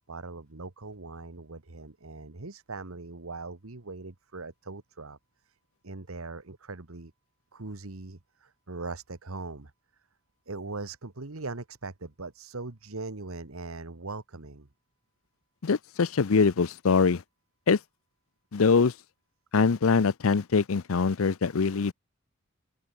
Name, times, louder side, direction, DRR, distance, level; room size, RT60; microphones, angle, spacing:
voice 1, 0.0-5.2 5.5-5.6 5.8-7.1 7.5-9.7 10.5-14.7, right 3 dB, 85° right, 1.5 m, -40 dB
voice 2, 15.6-17.2 17.7-17.8 18.5-18.9 19.5-21.9, left 5 dB, 75° left, 0.6 m, -23 dB
open air
head